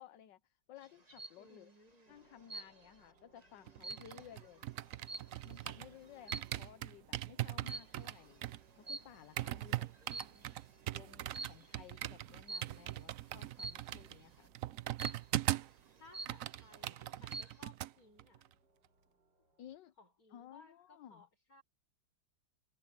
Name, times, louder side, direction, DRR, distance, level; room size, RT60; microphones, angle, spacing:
voice 1, 0.0-1.7 2.1-4.7 5.4-8.5 8.8-9.9 10.9-14.5 19.6-19.9 20.3-21.3, left 10 dB, 70° left, 1.5 m, -56 dB
sound 1, 0.8-1.4 2.5-3.0 3.4-5.7 6.2-6.7 7.7-8.1 8.9-9.5 9.9-10.6 11.3-11.7 12.5-12.9 13.6-14.0 15.0-15.5 15.9-16.0 16.1-16.7 17.1-17.6, right 3 dB, 20° right, 1.4 m, -46 dB
voice 2, 1.4-2.2 9.7-10.5 16.0-18.5 20.0-21.6, left 3 dB, 45° left, 6.2 m, -62 dB
sound 2, 2.1-19.8, right 2 dB, 60° right, 8.2 m, -70 dB
sound 3, 3.7-6.0 6.3-15.8 16.1-17.9 18.2-18.5, right 14 dB, 80° right, 0.7 m, -40 dB
omnidirectional pair, 2.1 m